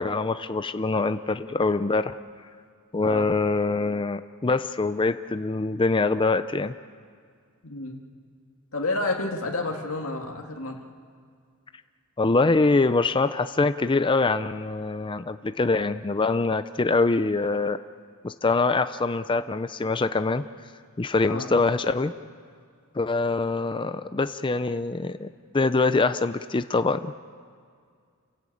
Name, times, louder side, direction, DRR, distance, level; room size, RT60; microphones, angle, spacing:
voice 1, 0.0-2.1 2.9-6.7 12.2-17.8 18.2-20.4 21.0-22.1 23.0-25.3 25.5-27.1, left 3 dB, 20° left, 10 dB, 0.5 m, -24 dB
voice 2, 7.6-8.0 8.7-10.8 21.2-21.5, left 2 dB, 65° left, 0 dB, 2.2 m, -30 dB
28.5 x 17.0 x 8.6 m, 2.1 s
head